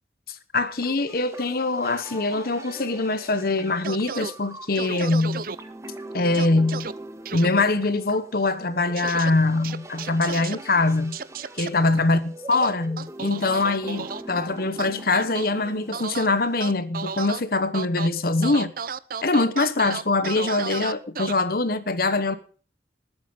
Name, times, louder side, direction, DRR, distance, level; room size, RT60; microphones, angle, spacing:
voice 1, 0.3-5.4 6.1-6.9 7.3-11.2 11.6-18.7 19.2-22.3, left 3 dB, 55° left, 1.1 m, -23 dB
sound 1, 0.8-16.8, right 1 dB, 15° right, 1.6 m, -42 dB
sound 2, 3.8-4.3 4.8-5.6 6.3-6.9 7.3-7.5 9.0-9.3 9.6-10.6 11.1-11.7 12.5-14.2 14.8-15.5 15.9-16.3 16.6-17.4 17.7-18.1 18.4-21.3, right 6 dB, 55° right, 0.7 m, -33 dB
20.0 x 9.1 x 5.2 m
head